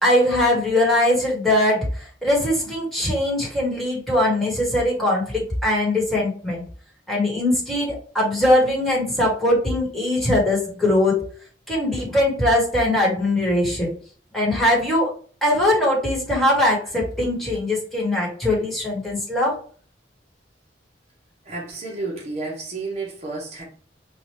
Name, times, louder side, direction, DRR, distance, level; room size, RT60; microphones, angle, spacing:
voice 1, 0.0-6.6 7.1-11.2 11.7-13.9 14.3-15.1 15.4-19.5, left 1 dB, ahead, 1.6 m, -21 dB
voice 2, 21.5-23.6, right 3 dB, 40° right, 1.1 m, -31 dB
4.9 x 2.5 x 3.1 m
head